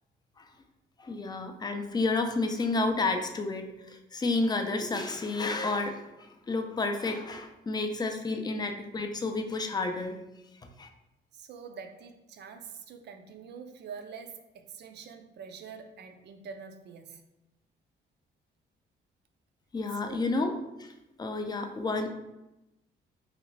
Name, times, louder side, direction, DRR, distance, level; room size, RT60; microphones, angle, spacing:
voice 1, 1.0-10.2 10.8-10.9 19.7-20.9 21.2-22.1, left 3 dB, 20° left, 5 dB, 0.4 m, -31 dB
voice 2, 11.3-17.2 19.9-20.3, right 6 dB, 60° right, 7 dB, 0.4 m, -45 dB
3.1 x 2.5 x 3.1 m, 0.94 s
cardioid pair, 90°, 20 cm